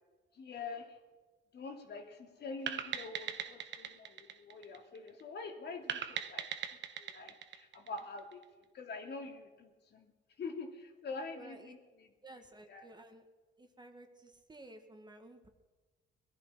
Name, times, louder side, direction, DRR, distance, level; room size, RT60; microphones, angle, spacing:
voice 1, 0.3-1.0 1.5-6.5 7.0-8.4 8.7-10.1 10.4-12.1 12.7-12.9, left 4 dB, 60° left, 3 dB, 2.7 m, -45 dB
sound 1, 2.7-5.2 5.9-8.4, right 8 dB, 65° right, 1.2 m, -40 dB
voice 2, 11.3-11.7 12.2-13.3 13.6-15.5, right 1 dB, 20° right, 5 dB, 2.0 m, -54 dB
20.5 x 11.5 x 5.8 m, 1.2 s
cardioid pair, 90°, 20 cm